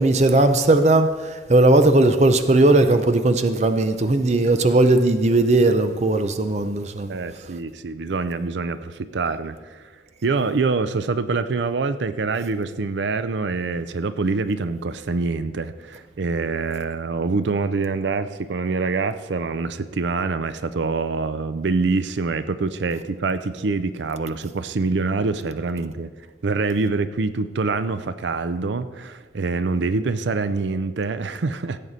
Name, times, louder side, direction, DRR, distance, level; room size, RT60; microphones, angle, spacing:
voice 1, 0.0-7.2, right 2 dB, 40° right, 0.5 m, -18 dB
voice 2, 7.1-9.8 10.2-26.1 26.4-31.8, right 4 dB, 85° right, 0.5 m, -25 dB
16.0 x 7.6 x 4.1 m
head